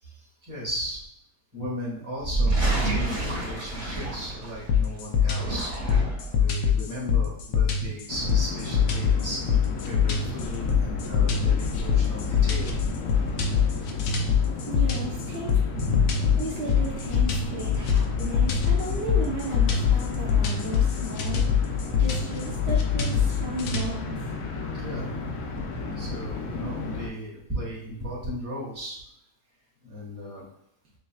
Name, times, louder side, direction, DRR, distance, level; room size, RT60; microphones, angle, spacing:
voice 1, 0.0-1.0 1.5-5.7 6.4-9.4 9.8-12.7 15.7-16.2 24.7-25.2 25.9-29.0 29.8-30.5, equal, 10° right, -6 dB, 1.5 m, -35 dB
sound 1, 2.2-4.7 5.2-6.4, right 2 dB, 40° right, 1.6 m, -28 dB
sound 2, 4.7-23.9, left 7 dB, 85° left, 1.3 m, -24 dB
sound 3, 8.1-27.1, left 3 dB, 70° left, 1.1 m, -33 dB
voice 2, 14.7-15.6 16.4-24.2, right 2 dB, 75° right, -3 dB, 1.5 m, -35 dB
6.4 x 2.6 x 2.3 m, 0.72 s
omnidirectional pair, 1.8 m